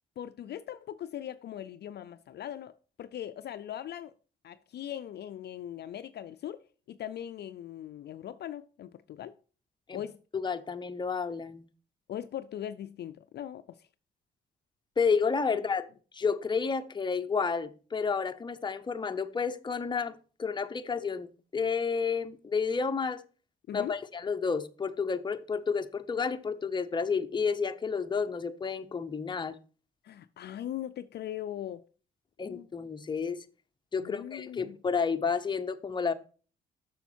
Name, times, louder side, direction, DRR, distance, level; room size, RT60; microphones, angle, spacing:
voice 1, 0.2-4.1 4.4-6.6 6.9-9.3 9.9-10.2 12.1-13.9 23.7-24.0 30.0-31.8 32.5-32.7 34.0-34.8, left 11 dB, 55° left, 0.4 m, -40 dB
voice 2, 10.3-11.7 15.0-15.9 16.1-21.3 21.5-23.2 23.7-29.6 32.4-33.4 33.9-36.1, left 5 dB, 25° left, 0.7 m, -31 dB
6.9 x 6.4 x 4.4 m
cardioid pair, 90°, 20 cm